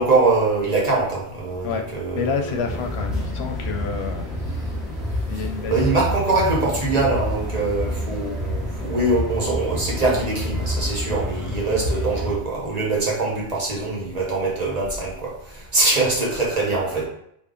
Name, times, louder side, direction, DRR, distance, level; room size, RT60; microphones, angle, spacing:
voice 1, 0.0-2.8 5.7-15.3 15.7-17.1, right 3 dB, 40° right, -2 dB, 0.9 m, -23 dB
voice 2, 2.1-4.2 5.3-6.1, left 6 dB, 90° left, 4 dB, 0.9 m, -29 dB
sound 1, 2.6-12.4, equal, ahead, 0.7 m, -28 dB
3.5 x 2.2 x 3.7 m, 0.74 s
omnidirectional pair, 1.0 m